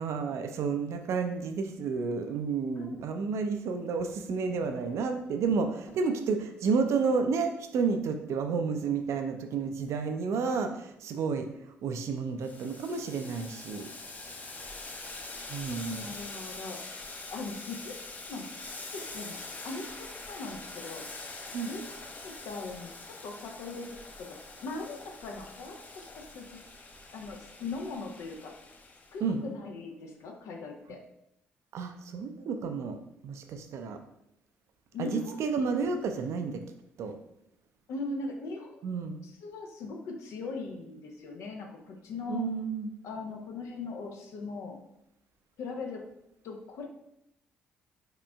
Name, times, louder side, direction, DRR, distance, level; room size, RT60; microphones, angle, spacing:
voice 1, 0.0-11.5 11.8-13.9 15.5-16.1 21.5-21.7 29.2-29.4 31.7-33.0 33.2-34.0 35.0-36.6 37.0-37.1 38.8-39.2 42.3-42.9, right 5 dB, 55° right, 7 dB, 0.4 m, -31 dB
Boiling, 12.4-29.2, left 3 dB, 30° left, 0.8 m, -44 dB
voice 2, 15.7-17.0 17.3-18.0 18.3-18.5 18.9-19.4 19.6-21.0 21.6-22.9 23.2-23.9 24.2-26.6 27.1-28.5 29.1-31.0 34.9-35.5 37.9-38.8 39.2-42.4 43.0-44.8 45.6-46.0 46.4-46.8, left 3 dB, 60° left, 2 dB, 0.6 m, -40 dB
4.9 x 4.4 x 2.2 m, 0.80 s
figure-of-eight pair, 45°, 6 cm